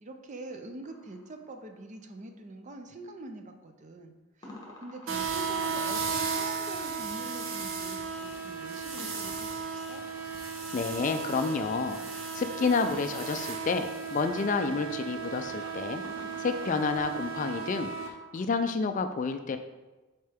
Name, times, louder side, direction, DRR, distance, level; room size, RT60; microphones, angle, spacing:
voice 1, 0.0-10.0, right 2 dB, 35° right, 5 dB, 0.5 m, -44 dB
sound 1, 0.8-2.2 4.4-13.0 16.0-18.7, left 1 dB, 20° left, 1.3 m, -52 dB
sound 2, 5.1-18.1, right 5 dB, 70° right, 0.9 m, -35 dB
voice 2, 10.7-16.0 16.4-17.9 18.3-19.6, left 4 dB, 35° left, 8 dB, 0.3 m, -29 dB
6.5 x 4.4 x 3.4 m, 1.2 s
head